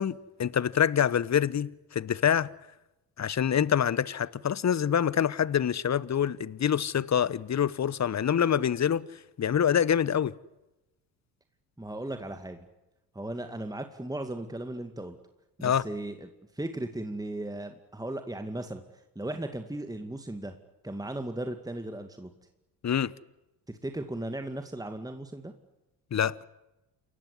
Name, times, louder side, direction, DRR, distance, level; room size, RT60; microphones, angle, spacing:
voice 1, 0.0-2.5 3.2-9.1 9.4-10.3 15.6-15.8 22.8-23.1 26.1-26.4, left 8 dB, 35° left, 1.0 m, -26 dB
voice 2, 11.8-12.6 13.1-15.2 15.6-16.3 16.5-18.8 19.2-20.6 20.8-22.3 23.7-25.5, right 1 dB, 10° right, 2.3 m, -36 dB
28.5 x 15.0 x 9.8 m
hypercardioid pair, 55°, 48 cm